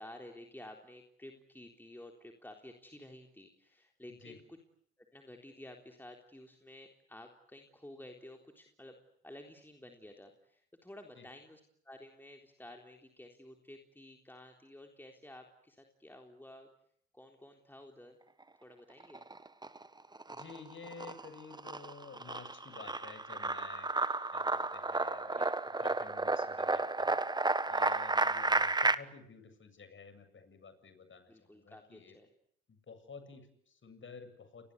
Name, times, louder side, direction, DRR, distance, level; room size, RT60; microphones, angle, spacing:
voice 1, 0.0-4.6 5.1-9.0 9.2-16.7 17.1-18.2 18.6-19.2 25.3-25.5 28.2-28.5 31.3-32.3, left 1 dB, 5° left, 3 dB, 3.8 m, -52 dB
sound 1, 19.0-19.8 20.2-28.9, right 3 dB, 10° right, 1.4 m, -32 dB
voice 2, 20.3-23.9 24.3-25.4 25.8-27.1 27.7-32.2 32.7-34.7, left 5 dB, 35° left, 10 dB, 7.6 m, -52 dB
30.0 x 21.5 x 8.2 m, 0.67 s
hypercardioid pair, 70°, 36 cm